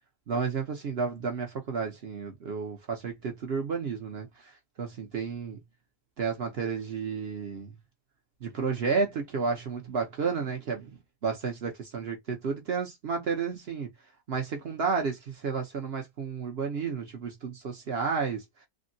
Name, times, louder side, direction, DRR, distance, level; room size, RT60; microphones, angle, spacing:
voice 1, 0.3-4.3 4.8-5.6 6.2-7.7 8.4-10.9 11.2-13.9 14.3-18.4, right 5 dB, 55° right, 0.7 m, -31 dB
3.6 x 2.1 x 2.6 m
omnidirectional pair, 1.7 m